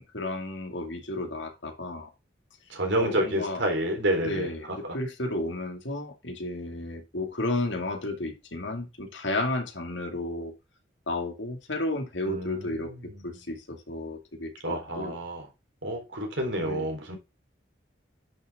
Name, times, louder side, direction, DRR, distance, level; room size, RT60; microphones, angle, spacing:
voice 1, 0.0-2.1 3.0-3.6 4.2-10.5 11.1-15.1 16.6-16.9, left 2 dB, 80° left, 2.3 m, -33 dB
voice 2, 2.7-4.5 12.3-13.2 14.6-15.5 15.8-17.2, right 1 dB, 80° right, 3.9 m, -29 dB
10.5 x 6.5 x 3.6 m
head